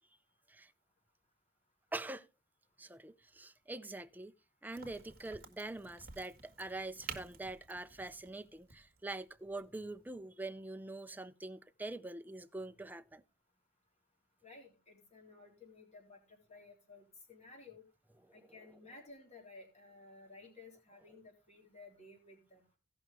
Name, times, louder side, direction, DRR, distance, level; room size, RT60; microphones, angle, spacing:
voice 1, 1.9-2.3 2.8-4.3 4.6-13.2, right 2 dB, 10° right, 0.5 m, -44 dB
Crack, 4.7-10.2, right 6 dB, 45° right, 1.7 m, -52 dB
voice 2, 14.4-17.8 18.3-22.6, left 3 dB, 35° left, 3.6 m, -56 dB
17.0 x 6.0 x 3.4 m
head